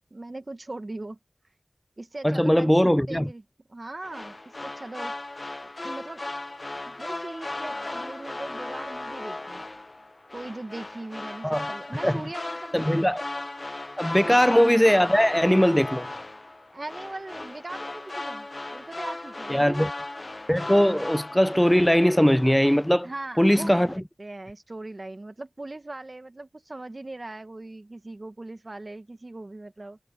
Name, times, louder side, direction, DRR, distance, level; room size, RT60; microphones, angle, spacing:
voice 1, 0.1-1.2 2.0-2.7 3.1-3.4 3.7-5.1 5.6-6.2 6.9-9.6 10.3-13.1 14.2-14.4 16.7-19.9 23.0-30.0, right 2 dB, 50° right, 1.5 m, -39 dB
voice 2, 2.2-3.3 11.4-11.7 12.0-12.2 12.7-13.2 14.0-16.1 19.5-19.9 20.5-23.1 23.4-23.9, equal, 5° left, 0.4 m, -20 dB
sound 1, 4.0-23.1 23.4-24.0, left 2 dB, 50° left, 0.7 m, -37 dB
wide cardioid pair, 50°, 0 cm